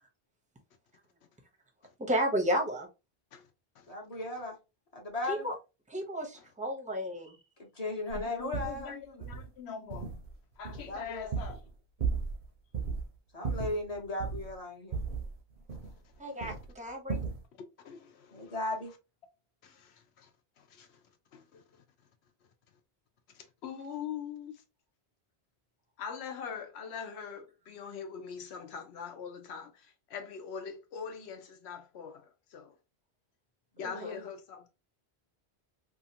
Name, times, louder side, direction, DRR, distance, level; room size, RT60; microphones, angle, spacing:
voice 1, 2.0-2.9 5.3-5.5 5.9-7.3 16.2-17.2 33.8-34.2, equal, 10° right, 0.6 m, -32 dB
voice 2, 3.9-4.6 4.9-5.5 7.6-9.3 10.9-11.3 13.3-15.0 18.3-18.9 33.8-34.2, left 2 dB, 40° left, 0.9 m, -37 dB
sound 1, 8.1-8.2 8.5-8.8 9.2-9.5 9.9-10.3 10.6-11.7 12.0-12.5 12.7-13.0 13.4-14.5 14.9-16.1 16.4-16.7 17.1-17.4, right 5 dB, 50° right, 0.7 m, -35 dB
voice 3, 8.2-10.1 10.6-11.6 15.8-15.9 16.3-16.6 17.6-18.6 19.6-20.3 20.6-21.0 21.3-21.8 23.3-24.6 26.0-32.7 33.8-34.7, left 7 dB, 80° left, 0.9 m, -43 dB
2.8 x 2.4 x 2.7 m
omnidirectional pair, 1.1 m